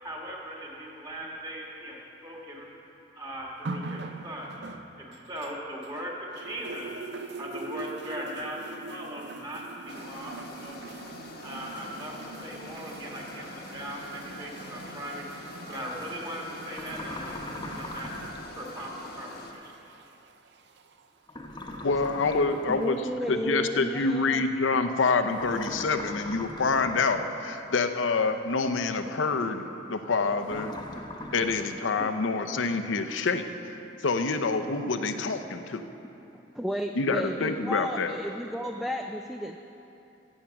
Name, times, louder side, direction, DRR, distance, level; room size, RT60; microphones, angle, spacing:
voice 1, 0.0-2.7 3.2-4.6 5.0-6.9 7.4-11.0 11.4-15.3 15.7-18.1 18.5-19.7, right 1 dB, 20° right, -2 dB, 1.8 m, -39 dB
sound 1, 3.6-6.0 6.3-21.1 21.9-22.0, right 3 dB, 65° right, 0.6 m, -43 dB
sound 2, 9.9-19.5, left 2 dB, 55° left, 1.0 m, -45 dB
sound 3, 16.7-18.6 21.3-22.9 25.3-27.3 30.4-31.7, left 1 dB, 25° left, 0.9 m, -40 dB
voice 2, 21.8-23.0 23.3-30.7 31.3-33.4 34.0-35.8 37.0-38.1, left 4 dB, 85° left, 7 dB, 0.7 m, -27 dB
voice 3, 22.7-24.4 30.9-31.0 32.0-32.1 35.4-35.5 36.5-39.6, equal, ahead, 4 dB, 0.3 m, -33 dB
15.5 x 7.4 x 5.9 m, 2.9 s
head